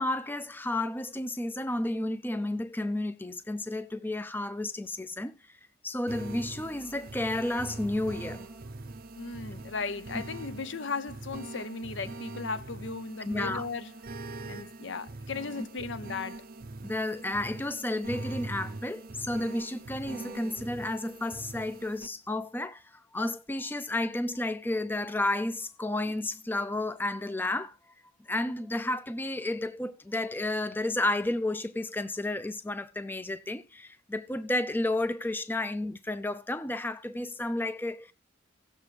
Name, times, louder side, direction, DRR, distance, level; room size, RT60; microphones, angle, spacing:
voice 1, 0.0-5.6 5.8-8.6 10.1-10.2 13.3-13.7 16.8-27.8 28.3-38.1, left 1 dB, 10° left, 0.4 m, -32 dB
sound 1, 6.1-22.1, right 2 dB, 45° right, 0.5 m, -42 dB
voice 2, 9.1-13.9 14.5-16.4, left 4 dB, 75° left, 0.7 m, -36 dB
17.5 x 6.9 x 3.3 m
head